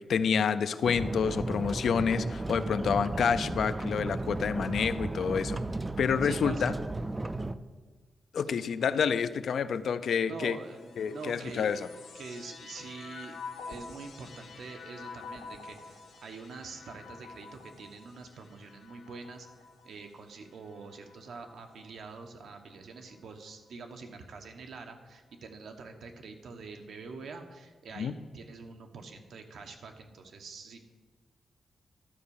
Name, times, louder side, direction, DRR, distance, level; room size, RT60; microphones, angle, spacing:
voice 1, 0.1-5.6 6.0-6.7 8.3-10.6 11.0-11.8 28.0-28.2, left 6 dB, 70° left, 13 dB, 0.4 m, -28 dB
sound 1, 0.8-7.5, right 2 dB, 15° right, 0.3 m, -34 dB
voice 2, 6.2-6.7 8.5-8.6 10.3-11.7 12.1-13.4 13.6-30.8, right 4 dB, 80° right, 5 dB, 1.1 m, -45 dB
sound 2, 10.5-22.0 22.7-23.5, left 5 dB, 85° left, 1.9 m, -48 dB
12.0 x 4.7 x 7.0 m, 1.3 s
wide cardioid pair, 160°, 0 cm